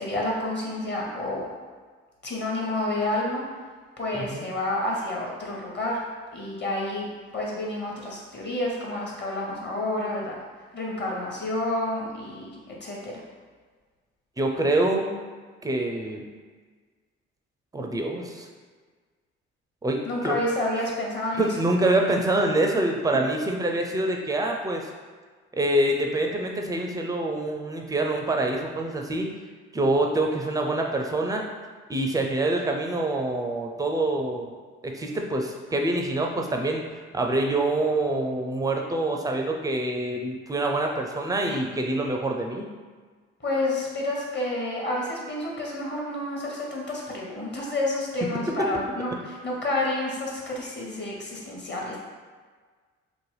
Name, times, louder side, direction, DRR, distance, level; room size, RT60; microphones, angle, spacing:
voice 1, 0.0-1.5 2.2-3.4 4.0-6.0 6.3-10.4 10.7-13.2 20.0-21.5 43.4-52.0, left 1 dB, 30° left, -3 dB, 1.0 m, -29 dB
voice 2, 4.1-4.5 14.4-15.1 15.6-16.3 17.7-18.5 19.8-20.4 21.4-24.9 25.5-29.3 29.7-31.5 31.9-34.5 34.8-36.8 37.1-42.7, right 2 dB, 10° right, 2 dB, 0.4 m, -26 dB
2.9 x 2.1 x 3.2 m, 1.5 s
hypercardioid pair, 50°, 34 cm